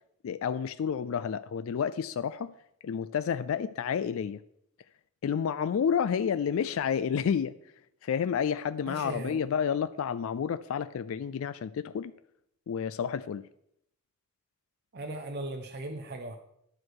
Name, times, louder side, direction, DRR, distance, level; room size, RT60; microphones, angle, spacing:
voice 1, 0.2-2.5 2.8-4.4 5.2-7.5 8.0-12.1 12.7-13.4, left 7 dB, 70° left, 13 dB, 0.3 m, -30 dB
voice 2, 8.9-9.4 14.9-16.4, right 2 dB, 50° right, 4 dB, 0.8 m, -38 dB
10.5 x 6.3 x 4.7 m, 0.74 s
head